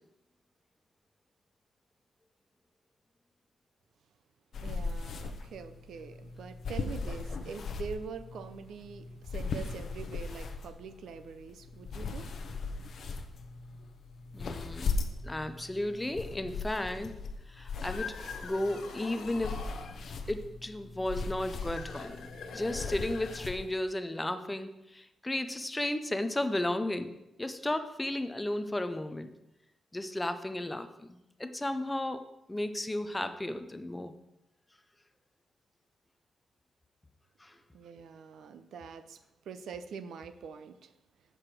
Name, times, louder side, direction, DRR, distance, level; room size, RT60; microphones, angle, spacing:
sound 1, 4.5-23.6, left 4 dB, 50° left, 0.7 m, -39 dB
voice 1, 4.6-12.3 12.7-12.9 37.7-39.2 39.5-40.9, right 6 dB, 75° right, 11 dB, 0.5 m, -44 dB
voice 2, 14.3-14.9 15.2-17.2 17.5-18.2 18.4-19.6 20.3-22.3 22.5-29.3 29.9-34.1 37.4-37.6, left 1 dB, 10° left, 9 dB, 0.4 m, -34 dB
sound 2, 17.6-20.0 21.4-23.9, left 5 dB, 85° left, 1.2 m, -44 dB
7.6 x 4.9 x 6.1 m, 0.93 s
wide cardioid pair, 165°, 0 cm